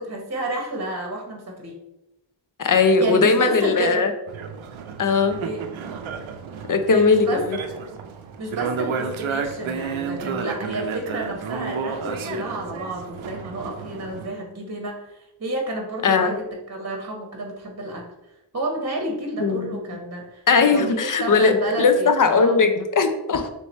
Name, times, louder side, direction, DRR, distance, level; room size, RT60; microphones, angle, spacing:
voice 1, 0.0-1.7 3.0-4.0 5.4-5.6 6.9-7.4 8.4-18.0 18.5-22.6, right 2 dB, 35° right, 0 dB, 0.9 m, -30 dB
voice 2, 2.6-4.1 5.0-5.4 6.7-7.6 16.0-16.4 19.4-19.8 20.5-23.5, left 4 dB, 45° left, 8 dB, 0.6 m, -19 dB
sound 1, 4.3-14.3, right 5 dB, 85° right, 0.6 m, -32 dB
3.3 x 3.1 x 4.1 m, 0.93 s
cardioid pair, 50°, 46 cm